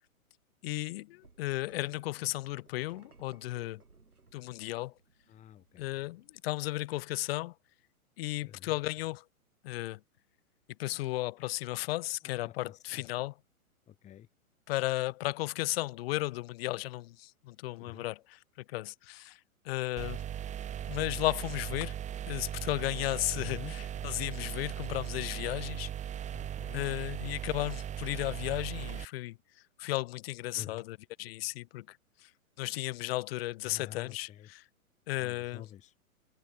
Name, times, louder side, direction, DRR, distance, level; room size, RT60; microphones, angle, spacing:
voice 1, 0.6-3.8 4.3-4.9 5.8-7.5 8.2-9.2 9.6-10.0 10.8-13.4 14.7-19.4 19.6-20.2 20.9-22.0 22.3-25.9 26.7-29.4 29.8-32.3 32.6-34.6 35.1-35.7, left 18 dB, 45° left, 3.1 m, -35 dB
sound 1, 1.2-7.1, right 3 dB, 85° right, 7.6 m, -62 dB
voice 2, 5.3-5.9 8.4-8.7 12.2-13.0 13.9-14.3 17.8-18.0 23.3-23.7 26.3-26.8 30.5-30.8 33.6-34.5 35.2-35.9, left 11 dB, 15° left, 1.6 m, -48 dB
sound 2, 20.0-29.1, right 10 dB, 15° right, 2.0 m, -38 dB
figure-of-eight pair, 120°, 43 cm